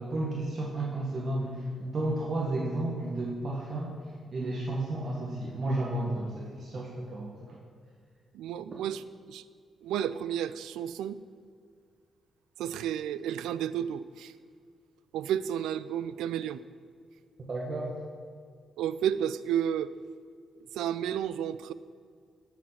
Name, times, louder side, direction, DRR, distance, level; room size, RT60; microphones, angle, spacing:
voice 1, 0.0-3.9 4.3-7.6 17.5-17.9, right 1 dB, 55° right, -3 dB, 1.6 m, -32 dB
voice 2, 8.3-9.0 9.3-9.4 9.8-11.2 12.6-14.3 15.1-16.6 18.8-19.9 20.7-21.7, right 9 dB, 85° right, 16 dB, 0.3 m, -31 dB
12.0 x 4.9 x 5.8 m, 2.1 s
supercardioid pair, 55°, 0 cm